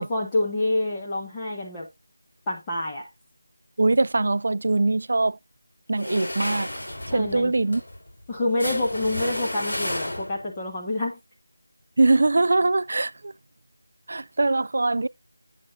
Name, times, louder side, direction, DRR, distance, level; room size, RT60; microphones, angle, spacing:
voice 1, 0.0-1.9 2.5-3.0 7.1-7.5 8.3-11.2, left 2 dB, 15° left, 1.2 m, -27 dB
voice 2, 3.8-5.4 5.9-6.7 7.1-7.8 12.0-13.3 14.1-15.1, right 2 dB, 50° right, 0.3 m, -22 dB
sound 1, 5.9-10.6, left 1 dB, 55° left, 3.3 m, -32 dB
8.2 x 7.1 x 2.6 m
figure-of-eight pair, 170°, 0 cm